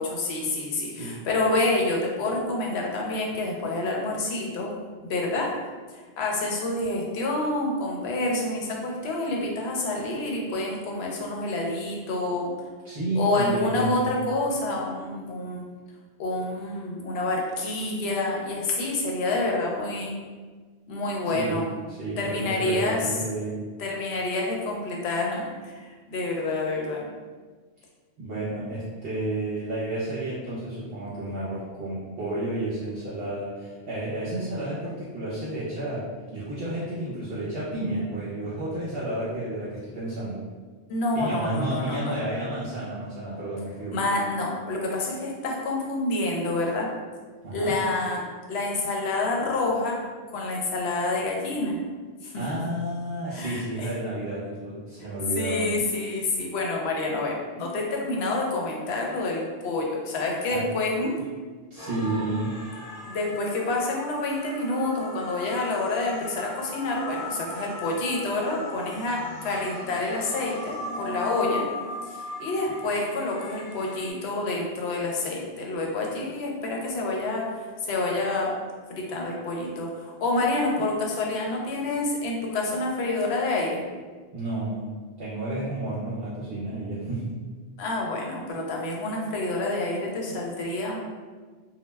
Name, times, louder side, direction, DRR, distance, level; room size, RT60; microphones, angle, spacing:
voice 1, 0.0-4.7 5.0-5.5 6.2-12.5 13.2-15.6 16.2-20.1 20.9-21.6 22.2-23.2 23.8-25.5 25.8-27.1 40.9-42.2 43.9-46.9 47.5-48.2 48.5-50.0 50.3-51.8 52.2-52.3 53.3-53.9 55.4-61.1 63.1-71.6 72.1-78.5 78.9-83.8 87.8-91.0, left 2 dB, 70° left, -1 dB, 0.8 m, -28 dB
voice 2, 0.9-1.2 12.8-14.1 21.2-21.6 21.9-23.6 28.2-36.1 36.3-40.4 41.1-43.9 47.4-47.7 52.3-55.7 60.5-60.6 61.7-62.5 84.3-84.9 85.2-87.2, right 1 dB, 60° right, -10 dB, 0.9 m, -31 dB
sound 1, 61.8-74.1, left 1 dB, 40° left, 0.5 m, -38 dB
2.2 x 2.2 x 3.1 m, 1.4 s
omnidirectional pair, 1.2 m